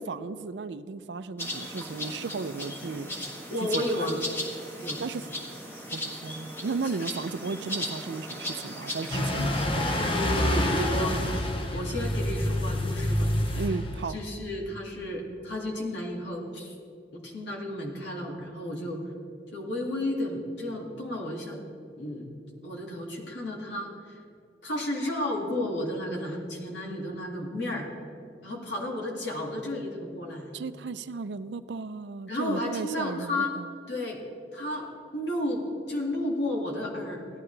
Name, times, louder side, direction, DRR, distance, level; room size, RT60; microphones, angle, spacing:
voice 1, 0.0-3.3 3.6-4.2 5.0-5.3 5.9-9.8 13.6-14.2 30.5-33.7, right 4 dB, 75° right, 13 dB, 0.5 m, -35 dB
sound 1, 1.4-9.7, left 1 dB, 10° left, 1.4 m, -37 dB
voice 2, 3.5-4.2 4.8-5.0 6.8-7.0 10.0-11.2 11.7-13.3 13.5-13.6 14.1-16.7 17.1-19.0 19.5-21.6 22.0-22.3 22.6-24.2 24.6-27.9 28.4-30.6 32.3-33.5 33.9-34.2 34.5-35.6 35.9-37.2, left 1 dB, 85° left, -1 dB, 2.2 m, -32 dB
sound 2, 9.1-14.2, left 1 dB, 30° left, 0.8 m, -27 dB
17.0 x 12.0 x 3.3 m, 2.4 s
head